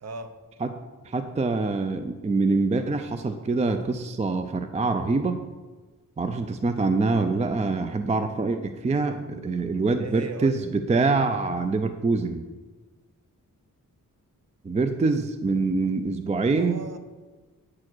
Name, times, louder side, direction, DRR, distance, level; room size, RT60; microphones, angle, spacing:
voice 1, 0.0-0.3 10.0-10.6 16.5-17.0, right 4 dB, 50° right, 8 dB, 0.7 m, -37 dB
voice 2, 1.0-5.4 6.2-12.4 14.6-16.8, right 3 dB, 20° right, 8 dB, 0.3 m, -25 dB
8.6 x 4.7 x 6.1 m, 1.3 s
wide cardioid pair, 175°, 34 cm